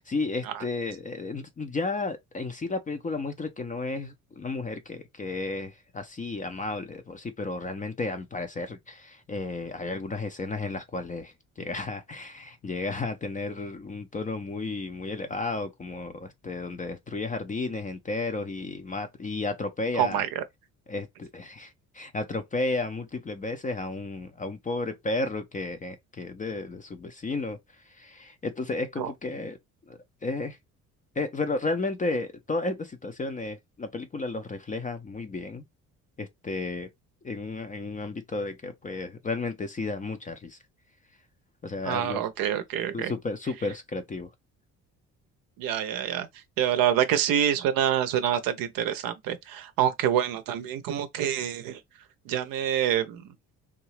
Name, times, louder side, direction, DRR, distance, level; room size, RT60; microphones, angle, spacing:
voice 1, 0.0-20.2 20.9-27.6 27.9-29.6 29.9-30.6 31.2-35.6 36.2-36.9 37.2-40.6 41.6-42.2 42.9-44.3, left 3 dB, 20° left, 0.5 m, -33 dB
voice 2, 20.0-20.4 29.0-29.1 41.9-43.1 45.6-46.3 46.6-51.8 52.3-53.2, right 10 dB, 50° right, 0.6 m, -26 dB
3.6 x 2.7 x 3.1 m
figure-of-eight pair, 45°, 43 cm